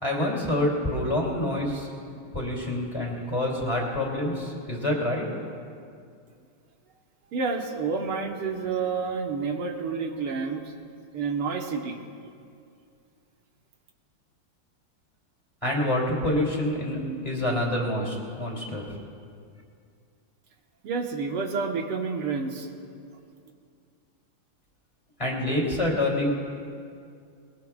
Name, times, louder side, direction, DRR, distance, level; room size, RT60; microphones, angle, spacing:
voice 1, 0.0-1.9 2.3-5.2 15.6-18.8 25.2-26.3, left 1 dB, 15° left, -2 dB, 2.9 m, -27 dB
voice 2, 7.3-10.6 11.1-12.0 20.8-22.7, right 5 dB, 85° right, 2 dB, 2.2 m, -29 dB
23.0 x 21.5 x 2.4 m, 2.4 s
omnidirectional pair, 2.4 m